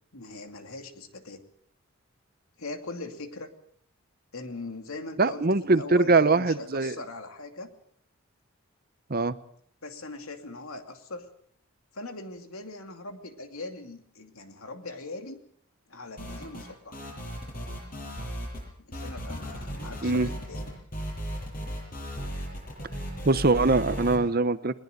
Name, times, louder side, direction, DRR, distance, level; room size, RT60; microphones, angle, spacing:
voice 1, 0.1-1.4 2.6-3.5 4.3-7.7 9.8-11.3 11.9-15.4 15.9-17.0 18.8-20.7, left 2 dB, 75° left, 6 dB, 2.6 m, -40 dB
voice 2, 5.2-6.9 9.1-9.4 20.0-20.3 23.2-24.8, right 3 dB, 45° right, 14 dB, 0.8 m, -22 dB
sound 1, 16.2-16.7 16.9-18.6 18.9-24.2, equal, 40° left, 7.3 m, -36 dB
21.5 x 20.0 x 6.7 m, 0.65 s
head